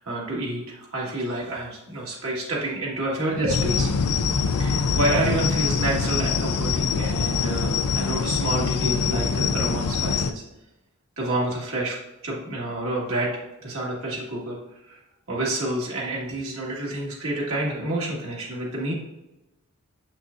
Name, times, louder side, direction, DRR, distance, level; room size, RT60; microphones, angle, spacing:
voice 1, 0.0-3.9 4.6-10.4 11.2-12.0 12.2-14.6 14.8-15.0 15.3-18.9, right 1 dB, 65° right, -5 dB, 2.0 m, -28 dB
sound 1, 3.5-10.3, left 5 dB, 75° left, 0.5 m, -24 dB
6.9 x 6.1 x 2.6 m, 0.96 s
head